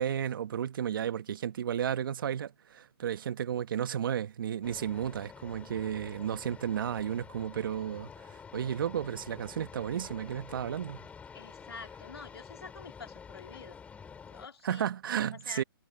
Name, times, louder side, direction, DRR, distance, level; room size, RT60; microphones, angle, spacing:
voice 1, 0.0-11.1 14.6-15.6, right 9 dB, 60° right, 1.5 m, -33 dB
sound 1, 4.6-14.5, left 6 dB, 10° left, 4.6 m, -49 dB
voice 2, 11.3-13.8 14.3-14.9 15.5-15.6, left 5 dB, 85° left, 2.8 m, -47 dB
hypercardioid pair, 145°, 13 cm